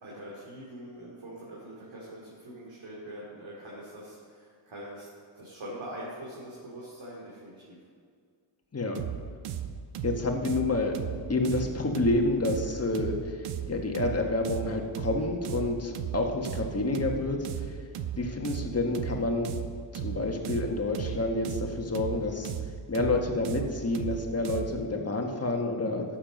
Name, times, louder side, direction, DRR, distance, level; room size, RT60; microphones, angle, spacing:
voice 1, 0.0-5.1 5.3-7.8, right 1 dB, 65° right, -6 dB, 2.9 m, -43 dB
sound 1, 8.9-24.8, right 9 dB, 85° right, 0.8 m, -36 dB
voice 2, 10.0-10.9 11.3-17.8 18.2-19.5 19.9-22.5 22.9-26.0, left 2 dB, 30° left, 2 dB, 1.6 m, -29 dB
12.5 x 7.6 x 5.4 m, 2.1 s
cardioid pair, 80°, 49 cm